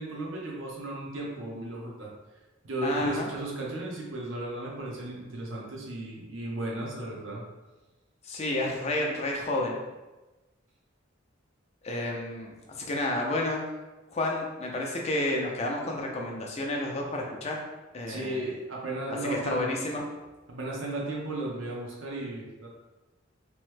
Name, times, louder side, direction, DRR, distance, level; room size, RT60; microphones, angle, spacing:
voice 1, 0.0-2.1 2.6-7.4 18.1-19.7 20.5-22.7, right 2 dB, 85° right, -3 dB, 0.8 m, -35 dB
voice 2, 2.8-3.3 8.2-9.8 11.8-13.6 14.1-17.5 17.9-18.4 19.2-20.0, left 2 dB, 35° left, -1 dB, 0.5 m, -30 dB
3.0 x 2.1 x 3.2 m, 1.1 s
head